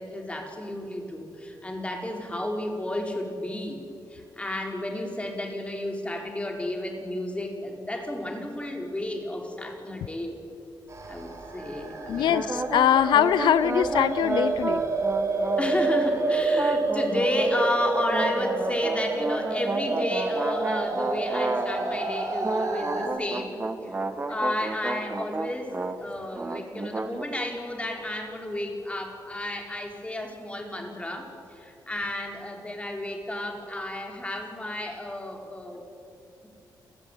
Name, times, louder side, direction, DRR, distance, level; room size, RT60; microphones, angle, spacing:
voice 1, 0.0-10.4 11.1-12.3 15.6-23.6 23.8-23.9 24.3-35.8, left 1 dB, 15° left, 2 dB, 4.6 m, -32 dB
sound 1, 10.9-23.1, right 3 dB, 40° right, 4.9 m, -29 dB
voice 2, 12.1-14.8, left 10 dB, 85° left, 16 dB, 0.6 m, -22 dB
sound 2, 12.3-16.1 16.5-17.6 18.1-22.0 22.4-26.0 26.3-27.3, right 3 dB, 25° right, 1.5 m, -32 dB
28.5 x 16.0 x 9.3 m, 2.6 s
cardioid pair, 90°, 8 cm